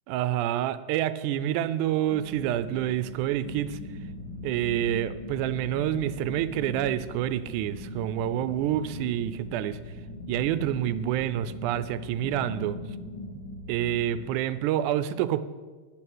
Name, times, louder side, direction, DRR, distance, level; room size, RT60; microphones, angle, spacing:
voice 1, 0.1-3.8 4.4-9.8 10.3-12.8 13.7-15.4, right 12 dB, 85° right, 14 dB, 2.0 m, -28 dB
sound 1, 2.1-14.4, left 2 dB, 80° left, 1.0 m, -40 dB
11.0 x 8.7 x 6.3 m, 1.4 s
omnidirectional pair, 3.5 m